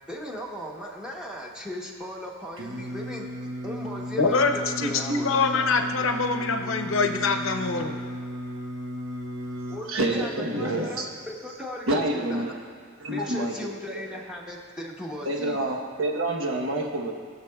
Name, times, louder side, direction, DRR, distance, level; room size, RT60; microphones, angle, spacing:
voice 1, 0.1-3.3 3.6-5.9 9.7-12.7 13.1-15.6, left 1 dB, 5° right, -2 dB, 0.9 m, -37 dB
Singing, 2.6-9.8, equal, 65° right, 1.0 m, -35 dB
voice 2, 4.2-7.9, left 4 dB, 75° left, 6 dB, 0.7 m, -24 dB
voice 3, 9.9-11.1 11.9-12.5 13.0-13.6 14.1-14.2 15.2-17.1, right 1 dB, 85° right, 1 dB, 1.1 m, -27 dB
19.5 x 6.9 x 2.3 m, 2.1 s
head